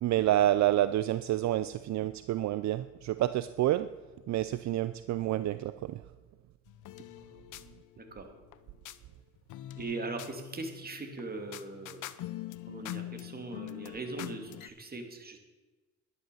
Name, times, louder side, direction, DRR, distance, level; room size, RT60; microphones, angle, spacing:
voice 1, 0.0-3.9 4.3-6.0, right 13 dB, 65° right, 14 dB, 0.5 m, -28 dB
sound 1, 6.7-9.0 9.5-14.7, left 14 dB, 80° left, 0.7 m, -44 dB
voice 2, 9.8-12.1 12.7-15.4, right 3 dB, 30° right, 5 dB, 2.6 m, -40 dB
11.0 x 11.0 x 7.1 m, 1.2 s
cardioid pair, 90°, 30 cm